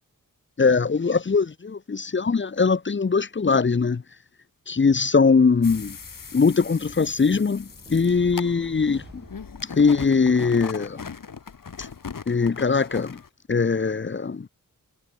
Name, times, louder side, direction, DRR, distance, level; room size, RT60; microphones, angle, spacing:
voice 1, 0.6-4.0 4.7-6.0 6.3-9.2 9.6-11.0 12.3-13.2 13.5-14.5, left 5 dB, 35° left, 0.8 m, -21 dB
sound 1, 5.6-13.3, left 6 dB, 70° left, 3.9 m, -39 dB
sound 2, 5.6-10.1, right 2 dB, 30° right, 7.7 m, -50 dB
wide cardioid pair, 110°, 34 cm